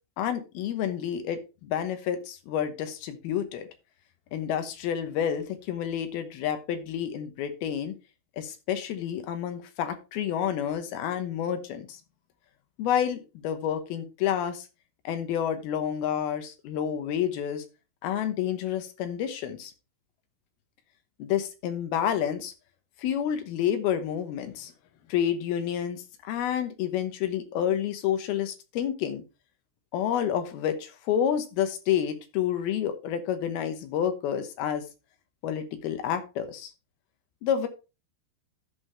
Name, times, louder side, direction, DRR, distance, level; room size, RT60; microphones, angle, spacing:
voice 1, 0.2-3.7 4.3-7.9 8.4-12.0 12.8-14.7 15.0-17.6 18.0-19.7 21.2-22.5 23.0-24.7 25.1-29.2 29.9-34.8 35.4-36.7 37.4-37.7, left 9 dB, 85° left, 8 dB, 3.0 m, -29 dB
14.0 x 5.5 x 3.2 m, 0.29 s
omnidirectional pair, 4.3 m